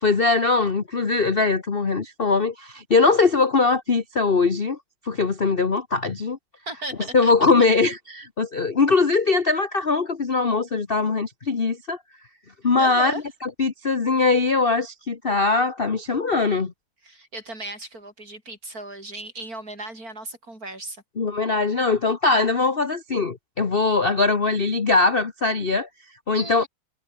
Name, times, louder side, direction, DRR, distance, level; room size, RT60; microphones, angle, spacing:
voice 1, 0.0-4.8 5.0-6.4 7.1-12.0 12.6-13.1 13.4-16.7 21.2-25.9 26.3-26.6, left 4 dB, 30° left, 1.3 m, -21 dB
voice 2, 6.7-7.3 12.8-13.2 17.0-21.0 26.3-26.7, right 2 dB, 40° right, 8.0 m, -35 dB
omnidirectional pair, 2.4 m